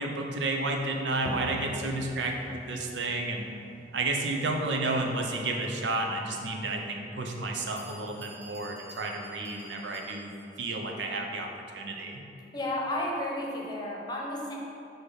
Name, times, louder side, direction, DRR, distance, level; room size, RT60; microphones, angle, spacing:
voice 1, 0.0-3.4 3.9-10.3 10.6-11.5 11.7-12.2, right 2 dB, 85° right, 2 dB, 0.7 m, -31 dB
sound 1, 1.3-6.7, equal, 5° left, 0.5 m, -45 dB
Bell, 7.8-10.6, right 2 dB, 15° right, 0.9 m, -50 dB
voice 2, 12.5-14.5, left 1 dB, 25° left, -3 dB, 0.9 m, -32 dB
6.5 x 2.9 x 5.6 m, 2.6 s
head